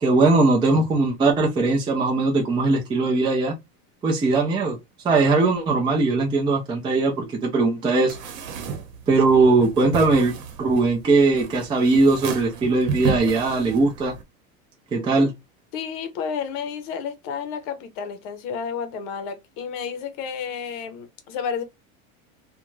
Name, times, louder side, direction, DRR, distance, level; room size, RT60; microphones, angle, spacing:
voice 1, 0.0-3.5 4.0-4.8 5.0-8.2 9.1-14.1 14.9-15.3, right 3 dB, 10° right, 0.5 m, -20 dB
sound 1, 8.1-14.2, right 5 dB, 85° right, 0.9 m, -33 dB
voice 2, 15.7-21.6, left 6 dB, 50° left, 0.8 m, -31 dB
2.4 x 2.2 x 3.0 m
supercardioid pair, 140°, 41 cm